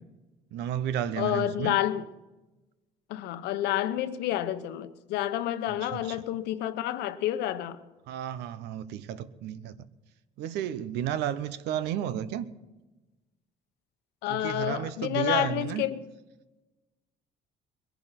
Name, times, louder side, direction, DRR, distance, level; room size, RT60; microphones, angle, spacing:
voice 1, 0.5-1.8 5.7-6.2 8.1-9.9 10.4-12.5 14.3-15.9, right 10 dB, 85° right, 0.9 m, -32 dB
voice 2, 1.2-2.0 3.1-7.8 14.2-16.0, left 13 dB, 85° left, 1.0 m, -29 dB
21.0 x 11.0 x 5.9 m
cardioid pair, 110°, 17 cm